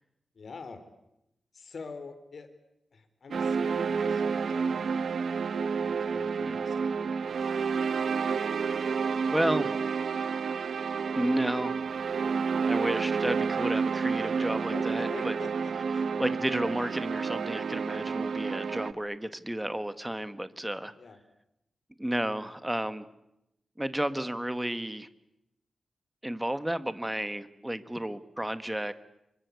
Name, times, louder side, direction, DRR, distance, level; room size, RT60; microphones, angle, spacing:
voice 1, 0.3-0.8 1.5-2.5 2.9-5.1 5.5-7.5 14.7-16.4 21.0-21.2, left 4 dB, 60° left, 10 dB, 4.0 m, -45 dB
sound 1, 3.3-18.9, right 5 dB, 75° right, 1.0 m, -30 dB
voice 2, 9.3-9.7 11.1-11.7 12.6-15.3 16.2-20.9 22.0-23.1 23.8-25.1 26.2-28.9, right 1 dB, 10° right, 12 dB, 1.6 m, -32 dB
28.0 x 24.5 x 8.4 m, 0.84 s
wide cardioid pair, 120°, 0 cm